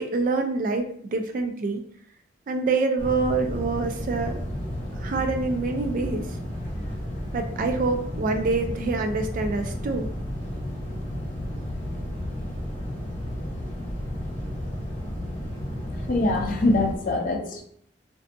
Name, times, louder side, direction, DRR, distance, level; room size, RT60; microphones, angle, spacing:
voice 1, 0.0-1.8 2.5-4.4 5.0-6.3 7.3-10.1, right 3 dB, 45° right, 6 dB, 0.3 m, -26 dB
sound 1, 3.0-17.0, equal, 30° left, 1.0 m, -32 dB
voice 2, 16.1-17.6, left 2 dB, 45° left, 2 dB, 0.4 m, -23 dB
2.5 x 2.2 x 2.5 m, 0.63 s
head